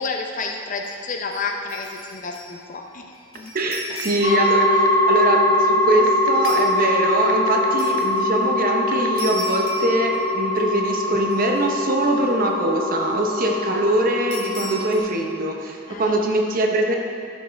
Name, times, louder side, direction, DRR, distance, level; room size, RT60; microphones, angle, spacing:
voice 1, 0.0-3.1 3.3-3.5 3.9-4.0 4.2-4.4 15.9-16.2, left 4 dB, 40° left, 2 dB, 0.6 m, -30 dB
sound 1, 0.8-1.0 1.3-2.6 2.9-4.5 6.4-6.7 7.8-8.1 9.2-10.6 10.9-11.0 11.3-12.1 14.3-15.0, left 1 dB, 90° left, 1.7 m, -37 dB
voice 2, 3.5-16.9, right 1 dB, 45° right, 2 dB, 0.8 m, -23 dB
sound 2, 4.0-4.1 4.5-4.9 5.2-5.3 5.9-7.7 8.0-8.1 8.9-9.1, right 8 dB, 75° right, 0.7 m, -33 dB
sound 3, 4.2-15.0, left 1 dB, 60° left, 2.2 m, -22 dB
12.0 x 5.5 x 3.4 m, 2.3 s
head